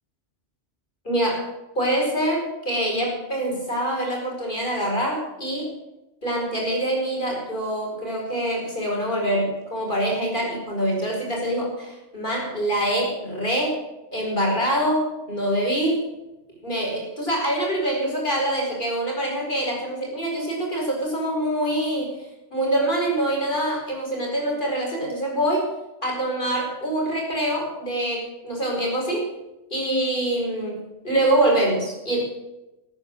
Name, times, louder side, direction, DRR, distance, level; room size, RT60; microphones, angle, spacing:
voice 1, 1.0-1.5 1.7-5.7 6.2-13.8 14.1-16.1 16.6-22.1 22.5-25.7 26.0-29.3 29.7-32.2, right 1 dB, 40° left, -1 dB, 5.1 m, -25 dB
13.0 x 9.5 x 7.8 m, 0.99 s
omnidirectional pair, 1.2 m